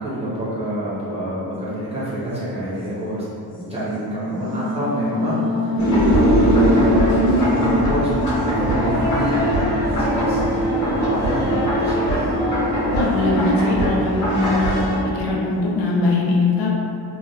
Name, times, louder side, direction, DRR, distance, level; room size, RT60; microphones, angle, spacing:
voice 1, 0.0-3.2 3.7-5.7 6.1-9.4 9.7-10.4 10.8-12.2 13.8-13.9, right 1 dB, 15° right, -11 dB, 0.7 m, -27 dB
sound 1, 1.4-2.0 2.4-2.5 3.5-15.9, left 1 dB, 20° left, 0.3 m, -27 dB
sound 2, 5.8-15.0, equal, 40° left, 0.9 m, -21 dB
voice 2, 12.9-14.8 15.1-16.7, left 2 dB, 70° left, -4 dB, 0.6 m, -21 dB
2.8 x 2.2 x 2.2 m, 2.5 s
wide cardioid pair, 155°, 43 cm